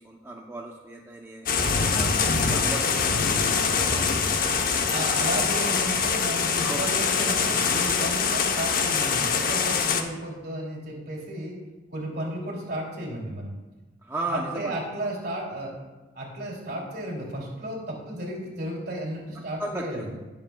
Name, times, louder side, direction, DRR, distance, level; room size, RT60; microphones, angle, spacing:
voice 1, 0.0-2.1 2.4-4.8 6.6-6.9 14.0-14.8 19.6-20.1, right 2 dB, 15° right, -1 dB, 0.6 m, -36 dB
sound 1, 1.5-10.0, left 5 dB, 50° left, 0.8 m, -24 dB
voice 2, 4.9-11.6 11.9-13.6 14.3-15.8 16.1-20.1, right 1 dB, 55° right, -2 dB, 2.8 m, -33 dB
19.5 x 7.3 x 2.2 m, 1.2 s
head